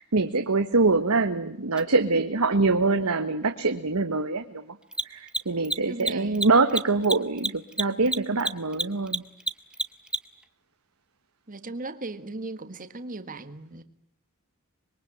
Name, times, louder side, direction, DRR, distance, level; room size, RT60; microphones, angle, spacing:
voice 1, 0.0-4.6 5.1-9.2, right 3 dB, 80° right, 1.3 m, -24 dB
Mechanisms, 1.8-1.9 4.8-10.4, right 1 dB, 5° right, 1.0 m, -29 dB
voice 2, 5.9-6.4 11.5-13.8, right 2 dB, 40° right, 1.6 m, -37 dB
25.5 x 22.5 x 9.2 m
head